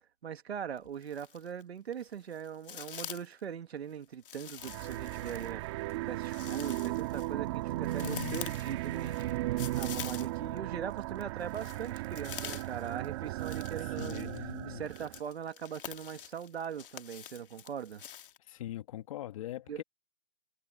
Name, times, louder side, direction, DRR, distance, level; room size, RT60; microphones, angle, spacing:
voice 1, 0.2-14.3 14.6-18.0 19.7-19.8, right 8 dB, 60° right, 2.2 m, -41 dB
sound 1, 0.8-1.6 1.9-3.4 4.2-10.6 10.9-18.4, left 9 dB, 45° left, 2.0 m, -46 dB
sound 2, 4.6-15.2, right 17 dB, 25° right, 1.9 m, -36 dB
voice 2, 8.0-8.4 13.8-14.9 18.4-19.8, left 13 dB, 30° left, 1.8 m, -41 dB
hypercardioid pair, 165°, 36 cm